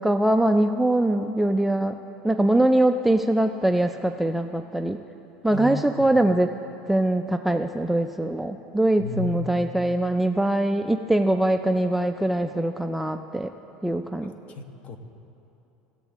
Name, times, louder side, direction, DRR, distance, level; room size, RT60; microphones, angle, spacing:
voice 1, 0.0-5.0 5.4-6.5 6.9-13.5 13.8-14.3, right 1 dB, 5° right, 6 dB, 0.3 m, -22 dB
voice 2, 5.5-6.1 9.0-9.4 14.5-15.0, left 4 dB, 40° left, 7 dB, 0.9 m, -33 dB
17.5 x 7.4 x 3.5 m, 2.9 s
supercardioid pair, 120°, 4 cm